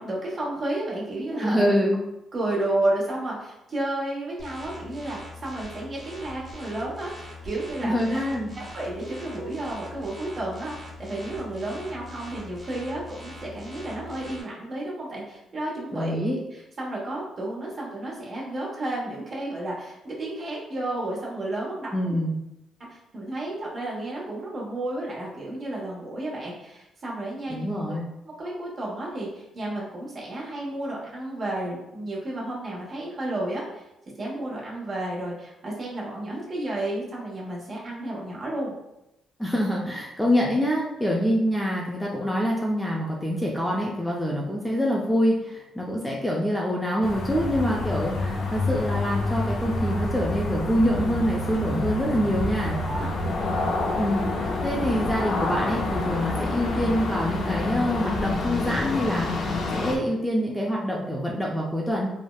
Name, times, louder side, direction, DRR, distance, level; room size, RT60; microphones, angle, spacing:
voice 1, 0.0-1.7 2.3-8.2 8.6-16.1 16.5-22.2 22.9-28.0 28.4-33.8 34.2-38.7 52.7-53.1, right 1 dB, 40° right, -4 dB, 1.0 m, -32 dB
voice 2, 1.4-2.0 7.8-8.5 15.9-16.4 21.9-22.3 27.5-28.0 39.4-52.7 54.0-62.1, equal, 5° left, -3 dB, 0.4 m, -25 dB
sound 1, 4.4-14.4, left 2 dB, 15° right, 1.2 m, -42 dB
sound 2, 47.0-60.0, left 2 dB, 65° left, 0.4 m, -28 dB
3.3 x 2.0 x 2.3 m, 0.89 s
cardioid pair, 90°, 0 cm